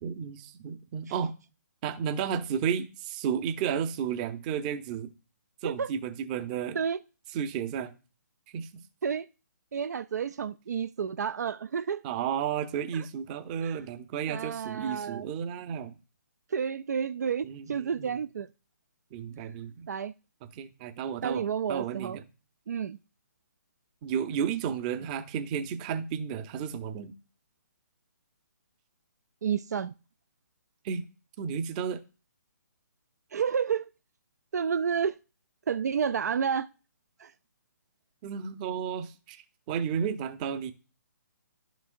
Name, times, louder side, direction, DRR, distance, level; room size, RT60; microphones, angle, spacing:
voice 1, 0.0-1.3 1.8-5.1 5.6-6.8 7.3-7.9 8.5-8.8 12.0-15.9 17.4-18.2 19.1-19.9 20.6-21.4 21.7-22.2 24.0-27.1 30.8-31.0 31.4-32.0 38.2-40.7, right 7 dB, 25° right, 0.7 m, -32 dB
voice 2, 9.7-12.0 12.9-13.1 13.6-13.8 14.3-15.3 16.5-18.5 19.9-20.1 21.2-22.2 22.7-23.0 29.4-29.9 33.3-33.9 34.5-35.2 35.7-36.7 37.2-37.3, right 7 dB, 65° right, 0.4 m, -30 dB
11.0 x 6.1 x 2.6 m
hypercardioid pair, 145°, 10 cm